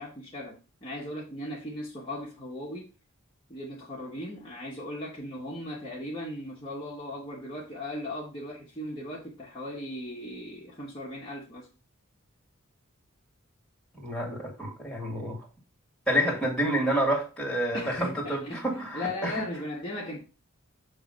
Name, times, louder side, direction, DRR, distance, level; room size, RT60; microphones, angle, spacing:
voice 1, 0.0-2.9 3.5-11.7 17.7-20.2, left 1 dB, 25° left, 1.3 m, -37 dB
voice 2, 14.0-15.5 16.1-19.5, equal, 5° left, 2.2 m, -29 dB
6.6 x 3.2 x 5.1 m
head